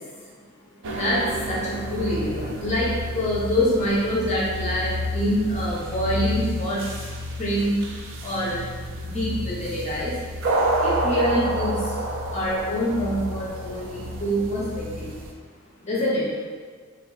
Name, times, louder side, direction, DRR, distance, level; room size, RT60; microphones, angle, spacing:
sound 1, 0.8-15.3, right 1 dB, 60° right, 0.4 m, -29 dB
voice 1, 0.9-7.1 7.4-7.7 8.2-8.6 9.0-10.1 10.8-11.9 12.3-15.1 15.8-16.3, equal, 35° left, -6 dB, 0.6 m, -25 dB
3.9 x 2.3 x 2.3 m, 1.5 s
head